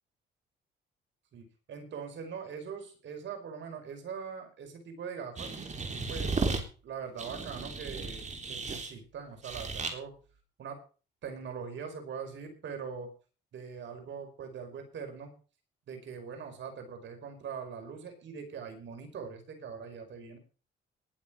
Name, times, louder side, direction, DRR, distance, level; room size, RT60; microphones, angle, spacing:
voice 1, 1.3-5.5 6.1-10.1 10.6-10.8 11.2-13.1 13.5-15.3 15.9-20.4, right 6 dB, 70° right, 5 dB, 5.4 m, -42 dB
sound 1, 5.4-6.6 7.2-8.9 9.4-9.9, right 4 dB, 35° right, 3.6 m, -34 dB
20.5 x 7.5 x 5.4 m, 0.37 s
cardioid pair, 90°, 20 cm